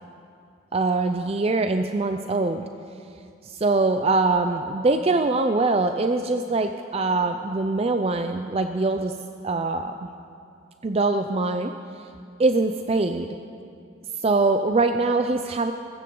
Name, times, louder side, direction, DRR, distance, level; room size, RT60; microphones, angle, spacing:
voice 1, 0.7-2.7 3.4-9.1 9.4-9.9 10.8-11.7 12.0-12.1 12.4-13.3 14.2-15.7, right 3 dB, 30° right, 7 dB, 0.4 m, -23 dB
20.0 x 15.0 x 3.8 m, 2.5 s
head